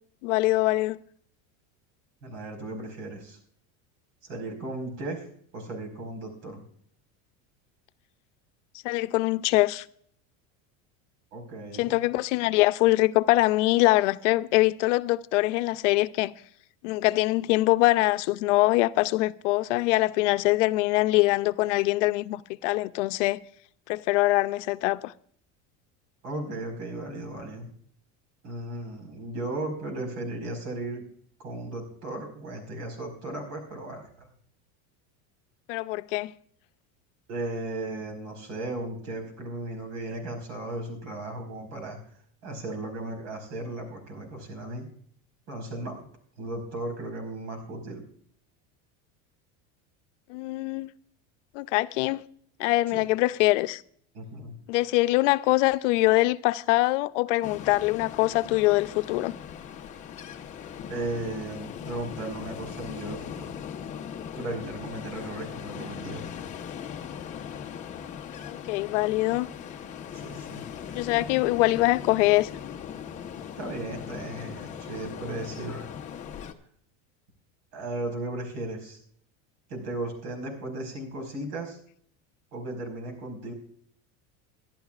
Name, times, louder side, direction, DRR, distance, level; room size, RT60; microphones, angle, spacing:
voice 1, 0.2-1.0 8.8-9.8 11.8-16.3 16.8-23.4 23.9-25.1 35.7-36.3 50.3-50.9 51.5-52.2 52.6-53.8 54.7-59.3 68.5-69.5 70.9-72.5, left 19 dB, 75° left, 0.6 m, -23 dB
voice 2, 2.2-3.4 4.2-5.2 5.5-6.6 11.3-12.0 26.2-27.7 28.4-31.0 31.4-34.3 37.3-42.0 42.4-44.9 45.5-46.0 46.4-48.0 52.9-53.0 54.1-54.5 60.9-63.5 64.3-66.4 70.1-70.6 73.6-75.9 77.7-79.0 79.7-81.8 82.5-83.5, right 2 dB, 80° right, 4.7 m, -36 dB
Ocean, 57.4-76.5, left 8 dB, 20° left, 0.8 m, -39 dB
23.5 x 11.5 x 2.4 m
cardioid pair, 170°, 36 cm